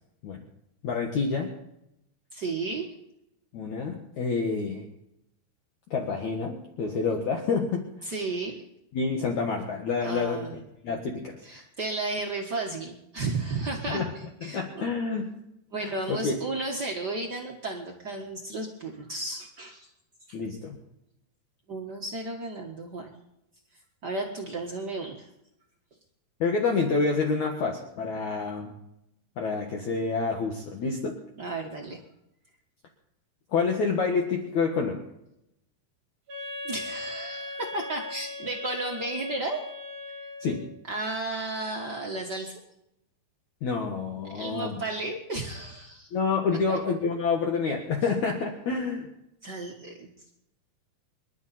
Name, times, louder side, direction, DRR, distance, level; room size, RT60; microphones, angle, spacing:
voice 1, 0.8-1.5 3.5-4.8 5.9-7.9 8.9-11.6 13.9-14.1 14.4-15.3 15.8-16.4 20.3-20.8 26.4-28.7 29.4-31.2 33.5-35.0 40.4-40.6 43.6-44.8 46.1-49.1, left 4 dB, 55° left, 1 dB, 2.4 m, -28 dB
voice 2, 2.3-2.9 8.0-8.6 10.0-10.5 11.4-14.9 15.7-19.9 20.3-20.4 21.7-23.1 24.0-25.3 31.4-32.0 36.6-39.6 40.9-42.6 44.3-46.1 46.7-46.8 49.4-50.1, right 2 dB, 75° right, 0 dB, 0.9 m, -33 dB
Wind instrument woodwind instrument, 36.3-40.7, left 2 dB, 50° right, 5.7 m, -39 dB
26.5 x 12.0 x 4.3 m, 0.84 s
omnidirectional pair, 4.6 m